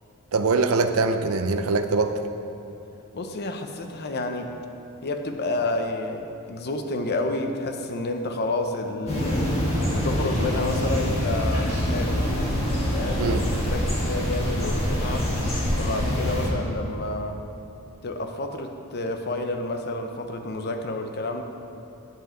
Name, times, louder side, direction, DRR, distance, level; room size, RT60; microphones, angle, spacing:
voice 1, 0.3-2.2 13.2-13.5, right 3 dB, 70° right, 8 dB, 0.6 m, -23 dB
voice 2, 3.1-4.5 5.0-12.3 12.9-15.3 15.8-17.4 18.0-21.4, left 2 dB, 50° left, 5 dB, 0.7 m, -30 dB
sound 1, 9.1-16.5, equal, 30° left, 2.0 m, -25 dB
10.5 x 7.3 x 4.4 m, 2.7 s
head